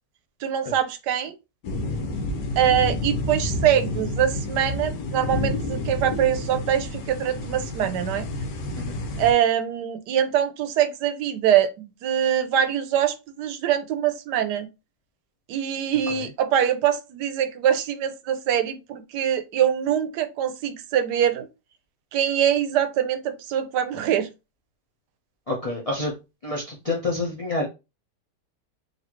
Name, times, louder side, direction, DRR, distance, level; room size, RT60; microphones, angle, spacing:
voice 1, 0.4-1.3 2.6-8.3 9.2-14.7 15.5-21.5 22.1-24.3, right 10 dB, 80° right, 1.2 m, -23 dB
sound 1, 1.6-9.3, left 2 dB, 80° left, 1.4 m, -29 dB
voice 2, 25.5-26.2 26.4-27.7, left 2 dB, 50° left, 0.4 m, -28 dB
4.1 x 2.6 x 3.0 m
omnidirectional pair, 1.8 m